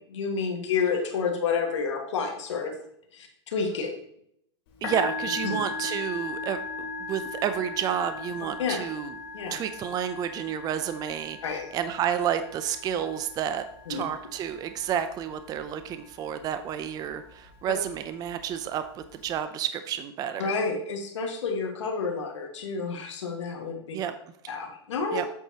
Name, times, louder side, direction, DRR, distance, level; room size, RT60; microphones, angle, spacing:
voice 1, 0.0-2.7 3.1-3.9 5.4-5.6 8.6-8.8 9.3-9.6 11.4-11.6 13.9-14.0 20.4-24.0 24.5-25.2, left 5 dB, 85° left, 2 dB, 1.8 m, -29 dB
Musical instrument, 4.7-19.4, left 3 dB, 55° left, 2.8 m, -39 dB
voice 2, 4.8-9.2 9.5-20.5 23.9-24.1 25.1-25.3, right 9 dB, 25° right, 10 dB, 0.5 m, -30 dB
8.1 x 7.5 x 2.9 m, 0.71 s
hypercardioid pair, 135°, 15 cm